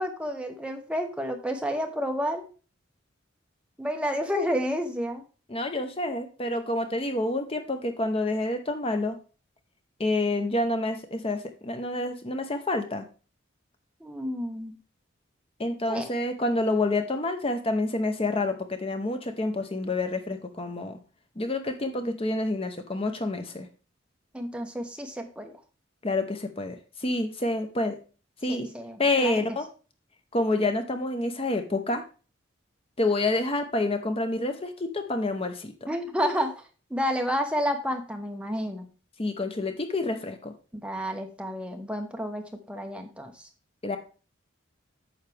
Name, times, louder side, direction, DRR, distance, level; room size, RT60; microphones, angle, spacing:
voice 1, 0.0-2.5 3.8-5.2 14.0-14.8 15.9-16.1 24.3-25.5 28.5-29.4 35.9-36.5 36.9-38.9 40.7-43.5, equal, 5° right, 4 dB, 0.9 m, -30 dB
voice 2, 5.5-9.2 10.0-13.1 15.6-21.0 21.4-23.7 26.0-28.0 28.4-28.7 29.0-29.7 30.3-32.0 33.0-35.7 39.2-40.5 43.8-44.0, left 2 dB, 30° left, 7 dB, 0.8 m, -28 dB
9.2 x 6.5 x 3.4 m, 0.35 s
head